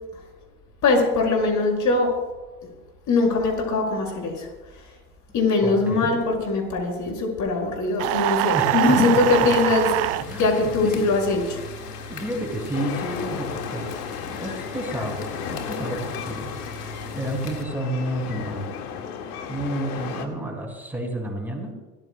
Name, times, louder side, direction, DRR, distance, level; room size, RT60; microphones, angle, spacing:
voice 1, 0.8-2.1 3.1-4.5 5.3-9.9 10.4-11.6, left 3 dB, 40° left, 1 dB, 5.7 m, -21 dB
voice 2, 5.6-6.1 8.5-9.2 10.2-11.0 12.1-13.9 14.2-15.2 15.5-16.5 17.1-18.8 19.5-21.7, right 1 dB, 5° right, 0 dB, 4.8 m, -30 dB
sound 1, 8.0-10.3, right 19 dB, 35° right, 0.4 m, -23 dB
sound 2, 9.0-17.6, left 4 dB, 90° left, 1.9 m, -38 dB
sound 3, 12.7-20.3, left 7 dB, 70° left, 1.9 m, -34 dB
26.5 x 14.5 x 2.2 m, 1.2 s
hypercardioid pair, 90°, 46 cm